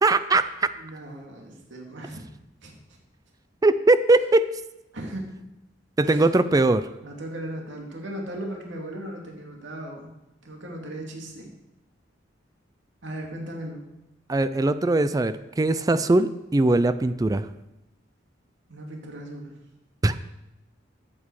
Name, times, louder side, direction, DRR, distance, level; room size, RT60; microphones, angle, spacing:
voice 1, 0.0-0.7 3.6-4.5 6.0-6.9 14.3-17.5 20.0-20.1, right 2 dB, 20° right, 13 dB, 0.4 m, -20 dB
voice 2, 0.8-2.2 2.6-2.7 4.9-5.5 6.0-6.3 7.0-10.1 10.4-11.5 13.0-13.9 18.7-19.6, right 1 dB, 70° right, 0 dB, 2.5 m, -37 dB
14.0 x 8.3 x 4.8 m, 0.93 s
head